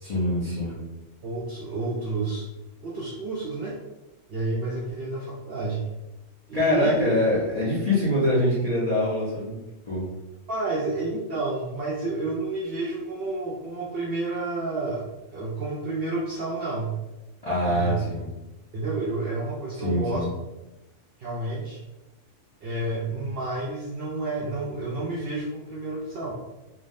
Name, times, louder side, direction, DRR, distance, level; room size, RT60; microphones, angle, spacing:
voice 1, 0.0-0.8 6.5-9.6 9.8-10.0 17.4-18.3 19.8-20.3, left 1 dB, 40° left, -9 dB, 0.6 m, -24 dB
voice 2, 1.2-2.5 2.8-3.8 4.3-5.9 6.5-7.1 10.5-17.0 17.6-18.0 18.7-20.2 21.2-21.8 22.6-26.3, right 2 dB, 60° right, -4 dB, 0.7 m, -30 dB
3.4 x 2.2 x 2.6 m, 1.0 s
omnidirectional pair, 1.3 m